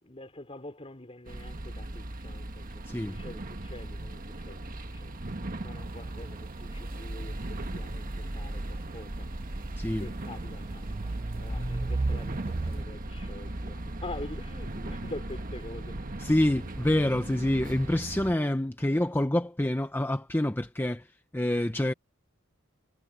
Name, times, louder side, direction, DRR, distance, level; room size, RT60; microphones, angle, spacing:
voice 1, 0.0-5.2 5.6-9.3 10.0-16.0, left 2 dB, 30° left, 3.2 m, -45 dB
sound 1, 1.3-18.3, right 1 dB, 45° right, 1.4 m, -38 dB
voice 2, 2.9-3.2 9.8-10.1 11.5-11.7 16.2-21.9, left 1 dB, 10° left, 0.7 m, -27 dB
sound 2, 5.8-12.8, right 3 dB, 30° right, 0.4 m, -37 dB
head